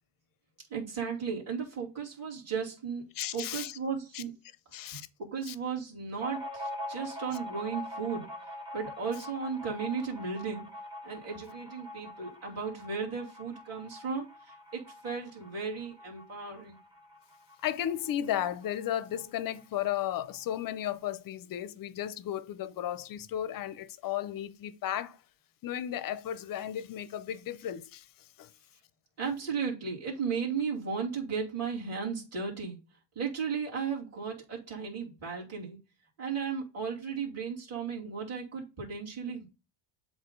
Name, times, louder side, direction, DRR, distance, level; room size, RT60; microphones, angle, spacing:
voice 1, 0.7-3.0 3.3-4.3 4.7-8.3 8.7-10.7 11.0-16.8 29.2-32.8 33.1-35.8 36.2-39.5, right 6 dB, 30° right, 2.6 m, -35 dB
voice 2, 3.1-3.7 4.1-4.2 4.7-5.1 5.5-5.6 17.6-25.2 25.6-28.1 28.4-28.5, left 11 dB, 45° left, 0.6 m, -34 dB
sound 1, 6.2-19.3 19.6-19.7 20.0-20.7, left 1 dB, 10° right, 1.1 m, -44 dB
7.8 x 2.7 x 5.2 m
cardioid pair, 130°, 50 cm